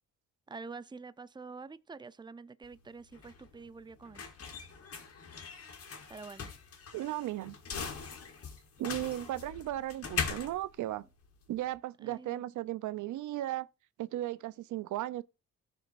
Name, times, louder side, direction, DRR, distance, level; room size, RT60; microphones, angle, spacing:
voice 1, 0.5-4.2 6.1-6.5 12.0-12.4, right 4 dB, 15° right, 0.6 m, -47 dB
sound 1, 2.6-11.7, left 6 dB, 50° left, 3.0 m, -41 dB
voice 2, 6.9-7.5 8.8-11.0 11.5-13.7 14.0-15.2, right 14 dB, 75° right, 0.6 m, -36 dB
16.5 x 6.4 x 2.5 m
cardioid pair, 90°, 30 cm